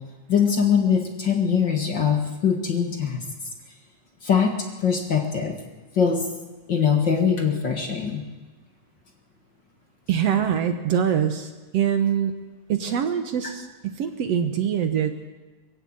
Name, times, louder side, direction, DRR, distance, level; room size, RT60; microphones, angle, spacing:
voice 1, 0.3-3.2 4.2-5.6 5.9-6.3 6.7-8.2, left 7 dB, 40° left, 4 dB, 2.0 m, -22 dB
voice 2, 10.1-12.3 12.7-15.3, right 8 dB, 60° right, 8 dB, 2.0 m, -24 dB
22.0 x 15.0 x 8.8 m, 1.2 s
omnidirectional pair, 3.6 m